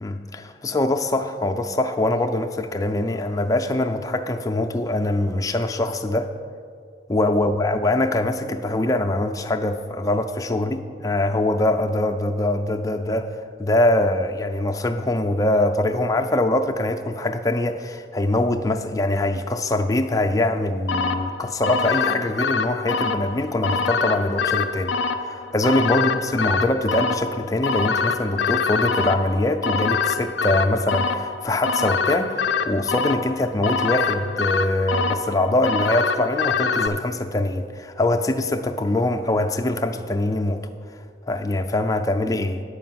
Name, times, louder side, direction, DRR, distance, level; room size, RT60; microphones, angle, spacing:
voice 1, 0.0-6.3 7.1-24.9 25.2-40.7 41.3-42.6, left 1 dB, 20° left, 4 dB, 0.4 m, -23 dB
sound 1, 20.9-36.9, left 5 dB, 90° left, 0.5 m, -25 dB
9.2 x 5.0 x 7.6 m, 2.2 s
head